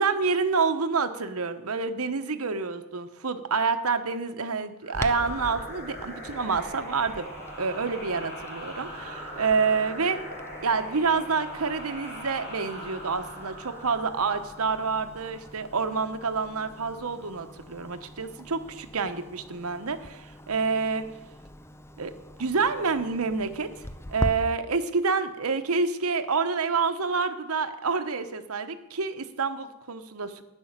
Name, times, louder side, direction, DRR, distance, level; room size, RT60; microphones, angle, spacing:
voice 1, 0.0-7.3 7.6-10.2 10.6-21.0 22.0-23.7 24.1-30.4, right 4 dB, 90° right, 9 dB, 1.0 m, -28 dB
sound 1, 4.8-16.1, equal, 45° left, 5.1 m, -41 dB
Clock, 4.9-24.3, left 1 dB, 10° left, 0.6 m, -42 dB
11.0 x 9.9 x 7.3 m, 0.97 s
head